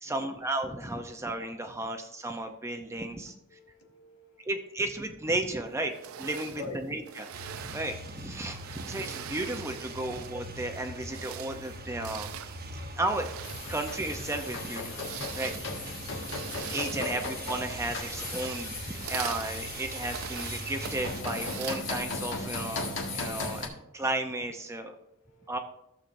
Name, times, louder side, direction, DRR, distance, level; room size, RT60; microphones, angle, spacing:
voice 1, 0.0-3.3 4.4-7.3 7.6-12.3 12.7-13.3 13.7-15.1 15.3-15.6 16.6-24.9 25.5-25.6, right 2 dB, 15° right, 5 dB, 0.6 m, -34 dB
voice 2, 3.5-4.5 6.5-6.8 10.0-10.1 17.0-17.2 24.9-25.6, left 3 dB, 85° left, 0 dB, 1.4 m, -44 dB
sound 1, 5.9-10.5 10.9-22.5, right 10 dB, 70° right, 0.4 m, -43 dB
sound 2, 7.3-21.2, right 2 dB, 45° right, 0.9 m, -42 dB
sound 3, 13.4-23.7, left 3 dB, 60° left, 1.6 m, -37 dB
14.5 x 7.2 x 2.6 m, 0.84 s
head